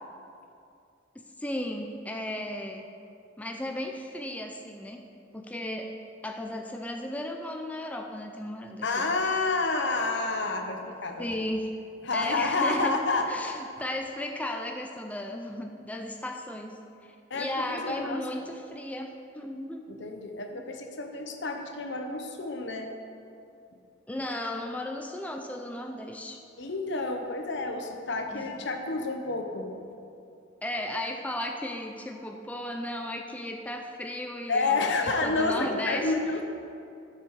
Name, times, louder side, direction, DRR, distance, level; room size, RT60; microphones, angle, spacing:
voice 1, 1.2-2.8 3.4-5.0 5.3-5.9 6.2-9.0 11.2-11.7 12.1-13.0 13.3-19.8 20.5-20.6 24.1-26.4 28.3-28.5 30.6-36.1, left 1 dB, 10° left, 3 dB, 0.5 m, -35 dB
voice 2, 8.8-11.3 12.0-13.3 17.3-17.5 17.8-18.3 19.9-22.9 26.6-29.7 34.5-36.4, left 3 dB, 65° left, 4 dB, 1.0 m, -29 dB
12.5 x 7.0 x 4.7 m, 2.5 s
head